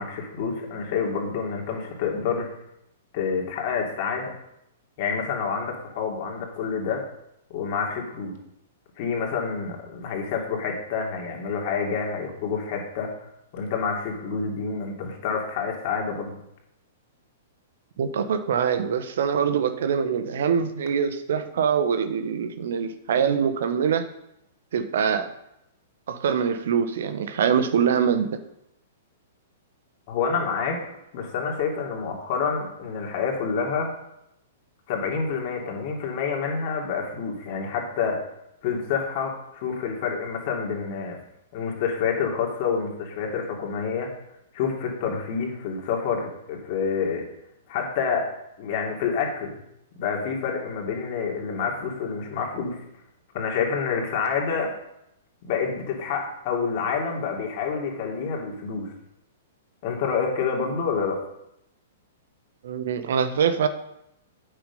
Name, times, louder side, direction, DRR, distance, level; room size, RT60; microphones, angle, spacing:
voice 1, 0.0-2.5 3.1-4.3 5.0-7.0 7.5-8.3 9.0-13.1 13.5-16.3 30.1-30.8 31.1-33.9 34.9-38.2 38.6-41.2 41.5-44.1 44.5-47.2 47.7-48.3 48.6-49.5 50.0-52.8 53.3-54.7 55.4-58.9 59.8-61.2, left 5 dB, 50° left, 0 dB, 2.9 m, -28 dB
voice 2, 18.0-24.1 24.7-25.3 26.1-28.4 62.6-63.7, right 7 dB, 65° right, 10 dB, 1.0 m, -24 dB
9.0 x 6.9 x 5.5 m, 0.82 s
figure-of-eight pair, 110°, 0 cm